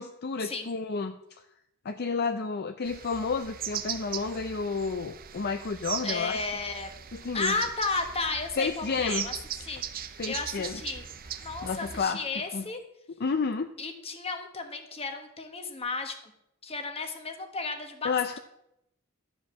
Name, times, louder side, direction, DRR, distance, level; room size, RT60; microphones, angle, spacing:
voice 1, 0.0-1.4 1.8-6.4 7.1-7.5 8.6-9.3 10.2-10.8 11.6-12.2 12.5-12.7 13.2-13.7 18.0-18.4, left 4 dB, 50° left, 8 dB, 0.5 m, -31 dB
sound 1, 2.8-12.0, right 9 dB, 45° right, 0.6 m, -39 dB
voice 2, 6.0-6.9 7.3-9.3 9.6-11.0 11.4-12.8 13.8-16.2 16.6-18.2, left 3 dB, 30° left, 6 dB, 1.2 m, -33 dB
12.0 x 5.1 x 7.2 m, 0.80 s
head